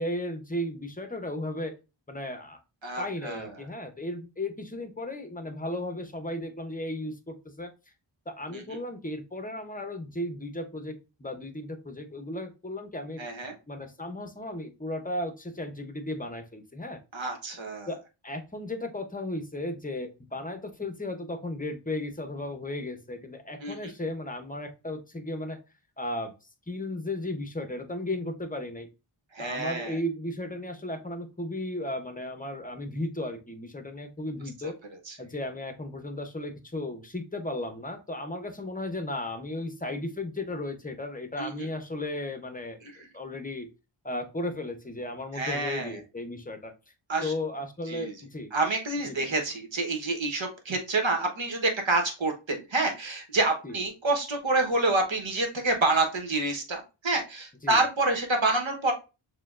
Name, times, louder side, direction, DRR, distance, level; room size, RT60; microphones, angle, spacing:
voice 1, 0.0-1.8 2.1-2.6 3.0-7.7 8.3-13.2 13.7-17.0 17.9-25.6 26.0-26.3 26.7-28.9 29.4-34.7 35.2-43.7 44.0-46.7 47.2-48.5 49.1-49.3 53.6-53.7 57.6-57.8, left 1 dB, 15° left, 6 dB, 0.7 m, -35 dB
voice 2, 2.8-3.5 8.5-8.6 13.2-13.5 17.1-17.9 23.6-23.9 29.3-30.0 35.1-35.2 41.4-41.7 45.3-46.0 47.1-47.3 47.9-48.1 48.5-58.9, right 2 dB, 65° right, 3 dB, 1.1 m, -28 dB
6.6 x 2.3 x 2.4 m, 0.29 s
wide cardioid pair, 50°, 49 cm